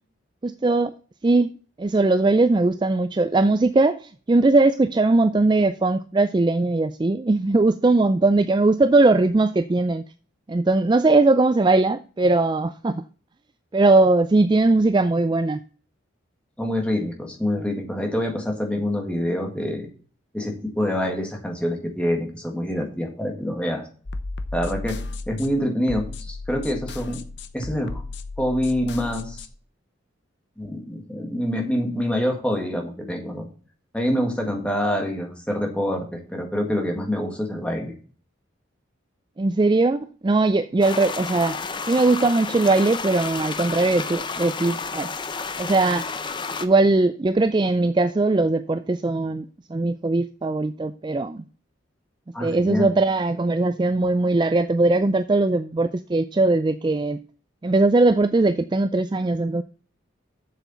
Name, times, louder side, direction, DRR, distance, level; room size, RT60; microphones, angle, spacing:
voice 1, 0.4-0.9 1.2-1.5 1.8-10.0 10.5-13.0 13.7-15.6 39.4-41.6 41.9-45.1 45.6-46.1 46.6-51.4 52.4-57.2 57.6-59.6, right 2 dB, 20° right, 0.3 m, -20 dB
voice 2, 16.6-19.9 20.3-23.8 24.5-25.0 25.3-27.2 27.5-28.0 28.4-29.4 30.6-33.5 33.9-37.9 52.3-52.9, left 1 dB, 5° left, 1.9 m, -26 dB
sound 1, 24.1-29.5, left 2 dB, 55° left, 0.8 m, -34 dB
sound 2, 40.8-46.7, left 5 dB, 25° left, 0.6 m, -31 dB
7.7 x 7.1 x 5.6 m
head